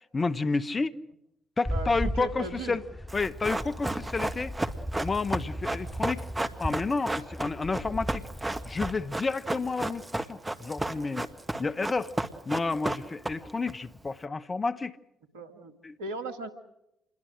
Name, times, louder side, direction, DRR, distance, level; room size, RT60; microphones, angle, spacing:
voice 1, 0.1-0.9 1.6-2.8 3.1-4.5 5.0-6.2 6.6-8.2 8.6-11.3 11.6-12.1 12.4-15.0 15.8-16.0, left 3 dB, 35° left, 1.1 m, -30 dB
sound 1, 1.6-9.1, equal, 5° left, 3.2 m, -38 dB
voice 2, 1.7-2.8 15.3-16.5, right 3 dB, 80° right, 1.9 m, -38 dB
Run, 3.1-13.7 14.0-14.1, right 2 dB, 20° right, 1.8 m, -32 dB
27.5 x 22.0 x 6.5 m
hypercardioid pair, 45°, 0 cm